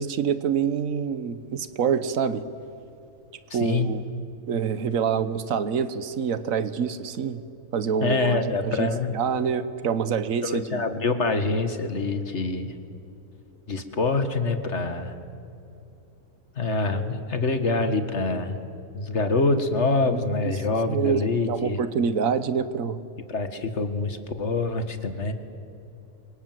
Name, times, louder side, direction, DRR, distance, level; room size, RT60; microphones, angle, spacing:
voice 1, 0.0-2.4 3.5-4.0 4.5-7.4 7.7-10.8 20.0-20.6 20.9-23.0, right 6 dB, 75° right, 13 dB, 1.4 m, -26 dB
voice 2, 3.5-3.9 8.0-9.1 10.4-12.7 13.7-15.1 16.6-18.6 18.9-21.8 23.3-25.3, left 3 dB, 55° left, 8 dB, 2.0 m, -25 dB
29.5 x 25.0 x 7.7 m, 2.9 s
omnidirectional pair, 1.4 m